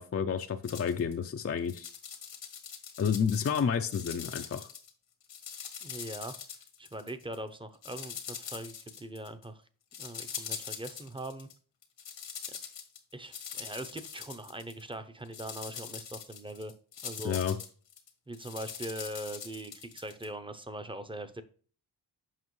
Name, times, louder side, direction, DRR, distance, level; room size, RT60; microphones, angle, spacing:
voice 1, 0.0-1.9 3.0-4.7 17.2-17.6, left 7 dB, 35° left, 6 dB, 0.5 m, -30 dB
sound 1, 0.6-1.1 1.6-3.6 3.9-4.9 5.2-7.4 7.8-9.4 9.9-11.5 11.8-14.9 15.2-20.3, left 7 dB, 80° left, 1.6 m, -43 dB
voice 2, 5.8-6.3 6.8-9.6 10.0-11.5 13.1-16.7 17.0-17.4 18.3-21.4, right 1 dB, 10° right, 10 dB, 0.7 m, -41 dB
7.4 x 5.5 x 3.1 m, 0.43 s
cardioid pair, 95°, 43 cm